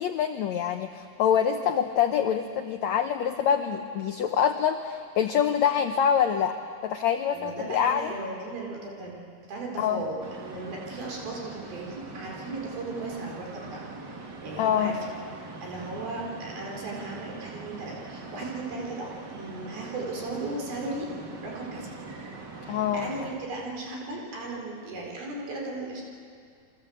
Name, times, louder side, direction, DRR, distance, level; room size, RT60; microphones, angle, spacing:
voice 1, 0.0-6.6 6.8-8.1 9.8-10.1 14.6-15.0 22.7-23.1, left 8 dB, 80° left, 6 dB, 1.6 m, -25 dB
voice 2, 7.3-15.0 15.6-21.1 21.4-21.9 22.6-26.0, right 2 dB, 70° right, -1 dB, 6.2 m, -36 dB
sound 1, 10.2-23.4, right 3 dB, 35° right, 2.1 m, -42 dB
29.5 x 23.0 x 8.0 m, 2.3 s
omnidirectional pair, 4.4 m